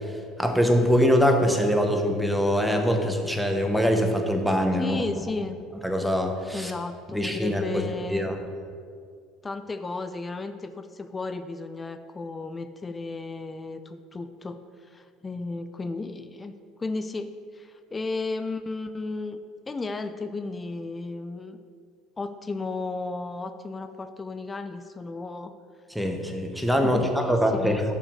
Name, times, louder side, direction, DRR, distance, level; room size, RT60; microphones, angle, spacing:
voice 1, 0.0-5.0 5.8-6.7 7.1-8.4 25.9-27.9, equal, ahead, 4 dB, 0.9 m, -23 dB
voice 2, 4.8-5.6 6.5-8.3 9.4-16.5 16.8-19.4 19.7-21.6 22.2-25.5 26.8-27.9, left 3 dB, 20° left, 10 dB, 0.4 m, -34 dB
6.5 x 6.0 x 5.4 m, 2.2 s
supercardioid pair, 115°, 0 cm